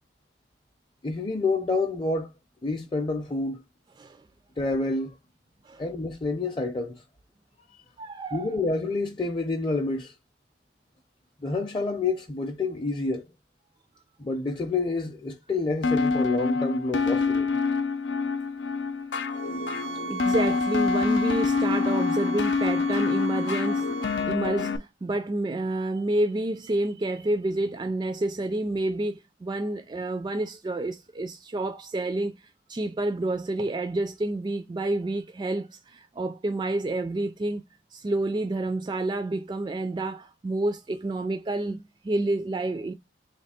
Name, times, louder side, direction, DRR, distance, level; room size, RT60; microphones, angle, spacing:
voice 1, 1.0-2.3 2.6-3.6 4.6-5.2 5.8-7.0 8.3-10.2 11.4-13.3 14.2-17.5, left 3 dB, 25° left, 0.5 m, -28 dB
voice 2, 8.0-8.6 19.0-19.1 20.1-23.9 24.2-37.6 37.9-42.9, right 2 dB, 25° right, 0.3 m, -29 dB
sound 1, 15.8-24.8, left 4 dB, 80° left, 0.6 m, -26 dB
sound 2, 19.3-24.3, right 5 dB, 80° right, 0.5 m, -38 dB
3.3 x 2.7 x 4.2 m
head